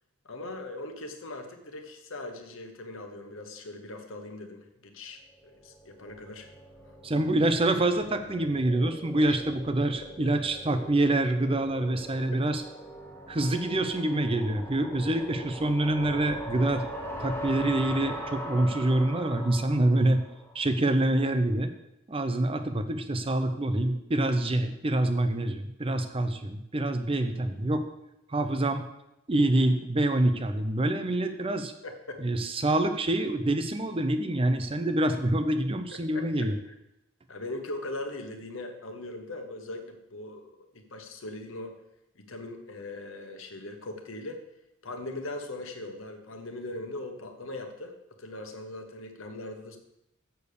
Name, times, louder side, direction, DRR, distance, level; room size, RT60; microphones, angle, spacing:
voice 1, 0.2-6.5 9.2-9.4 31.8-32.2 35.9-36.2 36.7-36.8 37.3-41.7 42.1-44.4 44.8-49.8, left 2 dB, 65° left, 5 dB, 1.2 m, -40 dB
sound 1, 5.5-20.7, equal, 10° left, 1.2 m, -41 dB
voice 2, 7.0-12.6 13.3-16.9 17.2-20.2 20.5-21.7 22.1-27.9 28.3-28.8 29.3-31.7 32.2-36.5, right 1 dB, 25° right, 8 dB, 0.6 m, -26 dB
6.9 x 6.7 x 6.7 m, 0.86 s
head